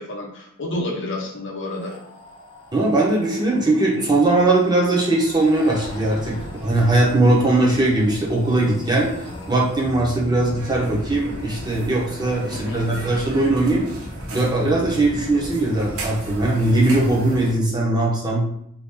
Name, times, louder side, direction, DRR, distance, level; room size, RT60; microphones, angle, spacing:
voice 1, 0.0-1.9 12.5-12.8, left 1 dB, 60° left, 1 dB, 0.7 m, -30 dB
sound 1, 1.7-17.5, equal, 25° left, 1.0 m, -37 dB
voice 2, 2.7-6.4 6.6-9.1 9.5-13.8 14.3-18.4, right 2 dB, 20° right, -4 dB, 0.8 m, -19 dB
sound 2, 10.5-17.6, right 2 dB, 90° right, 0.7 m, -37 dB
2.8 x 2.6 x 3.4 m, 0.72 s
head